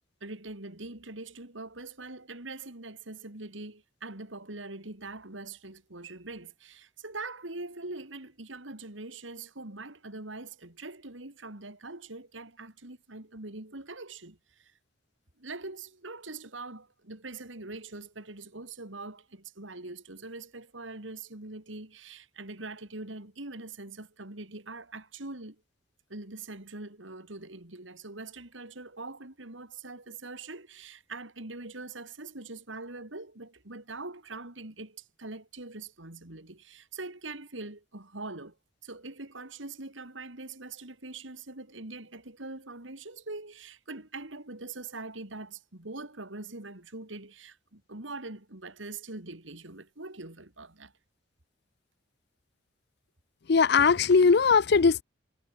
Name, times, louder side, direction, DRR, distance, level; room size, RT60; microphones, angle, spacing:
voice 1, 0.2-14.7 15.4-25.6 26.1-38.5 38.8-50.9, right 3 dB, 85° right, 3.4 m, -43 dB
voice 2, 53.5-55.0, left 5 dB, 60° left, 0.5 m, -20 dB
head